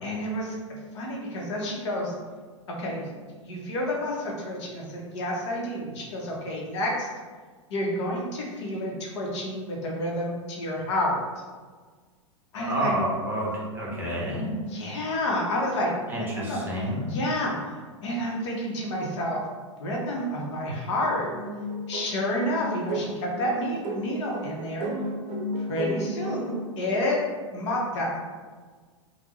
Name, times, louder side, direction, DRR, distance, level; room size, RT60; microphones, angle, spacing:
voice 1, 0.0-0.6 0.9-2.1 2.8-7.1 7.7-11.2 12.5-12.9 14.7-16.7 17.1-17.7 18.0-19.5 19.7-21.3 21.9-24.9 25.6-27.2 27.5-28.2, left 1 dB, 60° left, -2 dB, 0.9 m, -29 dB
voice 2, 12.6-14.5 16.1-17.2, equal, 10° right, -5 dB, 0.9 m, -29 dB
sound 1, 21.2-26.7, equal, 45° right, 0.6 m, -33 dB
3.3 x 2.2 x 3.1 m, 1.5 s
hypercardioid pair, 100°, 17 cm